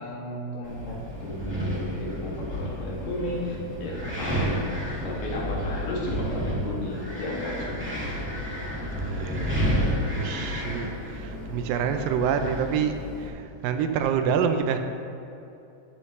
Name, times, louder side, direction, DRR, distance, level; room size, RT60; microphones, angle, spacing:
voice 1, 0.0-4.6 4.9-8.1, left 1 dB, 70° left, -4 dB, 3.3 m, -34 dB
Wind, 0.6-13.3, equal, 15° right, 0.4 m, -31 dB
voice 2, 9.0-14.8, right 7 dB, 85° right, 7 dB, 2.3 m, -27 dB
12.5 x 9.5 x 3.2 m, 2.8 s
omnidirectional pair, 4.0 m